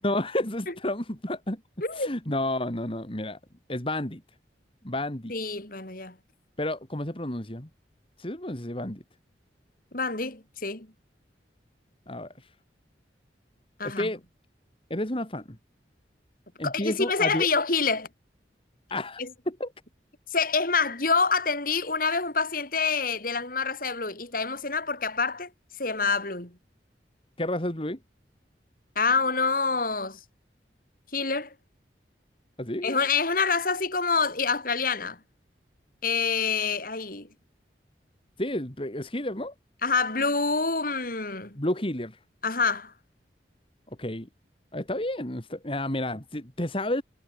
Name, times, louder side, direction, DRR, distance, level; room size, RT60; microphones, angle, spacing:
voice 1, 0.0-1.6 1.9-3.4 3.7-4.2 4.8-5.3 6.6-7.7 8.2-9.0 12.1-12.3 13.8-14.2 14.9-15.5 16.6-17.5 18.9-19.7 27.4-28.0 32.6-33.0 38.4-39.5 41.5-42.2 44.0-44.3 44.7-47.0, left 1 dB, 30° left, 3.1 m, -31 dB
voice 2, 1.8-2.1 5.3-6.2 9.9-10.9 13.8-14.1 16.6-18.1 19.2-19.3 20.3-25.5 25.8-26.5 29.0-30.2 31.1-31.5 32.8-35.2 36.0-37.3 39.8-41.6 42.4-42.9, left 4 dB, 50° left, 5.1 m, -26 dB
head